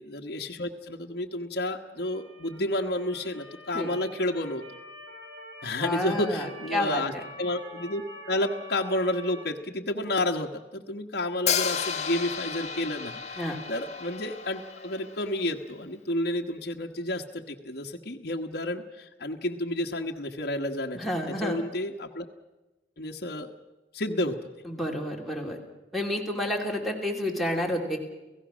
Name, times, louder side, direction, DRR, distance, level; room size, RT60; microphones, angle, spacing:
voice 1, 0.0-4.6 5.6-21.1 21.4-22.3 23.0-23.6 23.9-24.5, left 1 dB, 55° left, 2 dB, 1.3 m, -31 dB
Motor vehicle (road) / Siren, 2.0-9.4, equal, 70° right, 6.0 m, -46 dB
voice 2, 5.8-7.2 13.4-13.6 20.9-21.6 24.6-25.6 25.9-28.0, left 1 dB, ahead, 1 dB, 2.9 m, -30 dB
Hi-hat, 11.5-15.4, left 7 dB, 40° left, 1.4 m, -32 dB
29.5 x 16.5 x 6.3 m, 1.1 s
head